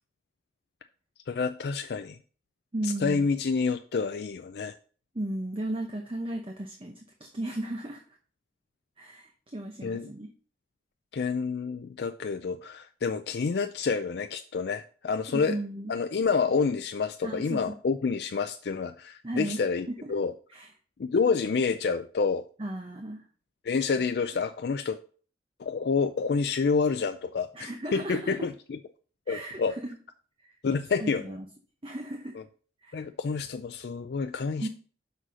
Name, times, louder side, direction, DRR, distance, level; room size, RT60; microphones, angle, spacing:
voice 1, 1.3-2.2 2.8-4.7 9.8-10.1 11.1-15.6 15.9-20.3 21.0-22.4 23.6-25.0 25.6-28.8 29.3-29.7 30.6-31.4 32.9-34.7, left 5 dB, 60° left, 8 dB, 0.4 m, -28 dB
voice 2, 2.7-3.3 5.1-8.0 9.0-10.3 15.3-16.0 17.2-17.8 19.2-19.6 19.9-20.1 20.5-20.7 22.6-23.2 27.5-28.5 29.3-29.9 30.4-30.5 31.0-31.5 31.8-32.4 32.8-33.0 34.6-34.7, right 1 dB, 30° right, 2 dB, 0.8 m, -35 dB
6.2 x 4.2 x 6.2 m, 0.41 s
head